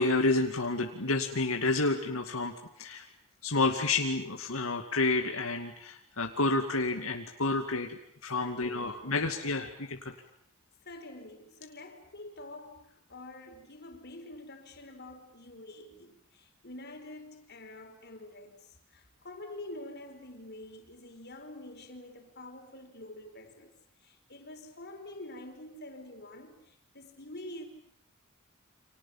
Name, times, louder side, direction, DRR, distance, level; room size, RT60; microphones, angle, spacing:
voice 1, 0.0-3.0 3.4-10.1, left 3 dB, 85° left, 2.3 m, -30 dB
voice 2, 8.3-9.2 10.8-23.7 24.0-27.7, left 1 dB, 50° left, 4.9 m, -47 dB
30.0 x 26.0 x 7.4 m
head